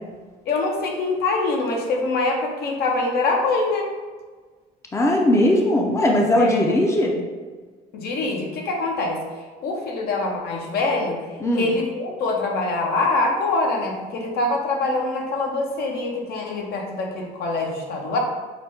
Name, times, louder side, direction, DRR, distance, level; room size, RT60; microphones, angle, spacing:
voice 1, 0.5-3.9 6.4-6.7 7.9-9.2 9.6-11.2 11.5-18.2, left 3 dB, 70° left, 1 dB, 0.8 m, -24 dB
voice 2, 4.9-7.1 11.4-11.7, left 1 dB, 15° left, 0 dB, 0.5 m, -19 dB
5.8 x 2.2 x 3.5 m, 1.4 s
cardioid pair, 110°, 17 cm